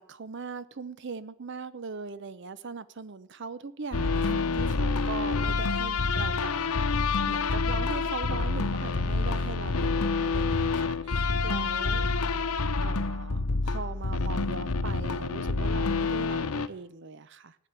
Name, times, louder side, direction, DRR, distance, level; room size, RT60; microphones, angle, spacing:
voice 1, 0.0-6.5 7.3-12.1 12.8-17.7, right 4 dB, 50° right, 16 dB, 0.6 m, -40 dB
sound 1, 3.9-16.7, left 4 dB, 90° left, 0.9 m, -27 dB
15.5 x 10.0 x 8.1 m, 0.73 s
head